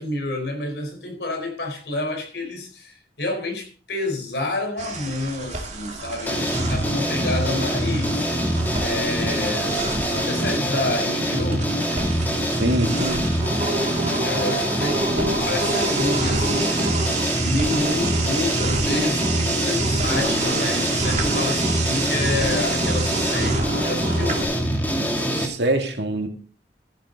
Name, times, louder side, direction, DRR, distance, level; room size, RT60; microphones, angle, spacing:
voice 1, 0.0-8.3 8.8-11.7 14.2-16.9 17.4-24.4, left 2 dB, 70° left, 4.1 m, -29 dB
sound 1, 4.8-24.4, right 3 dB, 40° right, 2.5 m, -29 dB
sound 2, 6.3-25.5, equal, 10° left, 2.6 m, -24 dB
voice 2, 12.5-13.3 25.1-26.3, right 1 dB, 70° right, 2.4 m, -24 dB
14.0 x 10.5 x 3.8 m
head